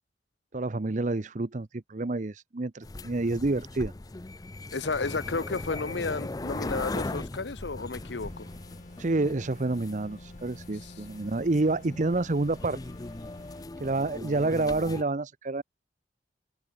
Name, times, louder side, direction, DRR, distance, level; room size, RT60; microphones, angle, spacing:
voice 1, 0.5-3.9 9.0-12.8 13.8-15.6, right 2 dB, 45° right, 0.7 m, -28 dB
sound 1, 2.8-15.0, left 2 dB, 20° left, 0.5 m, -39 dB
voice 2, 4.7-8.5 10.8-10.9, left 3 dB, 85° left, 1.0 m, -32 dB
sound 2, 7.9-13.7, left 1 dB, 45° left, 2.9 m, -49 dB
open air
head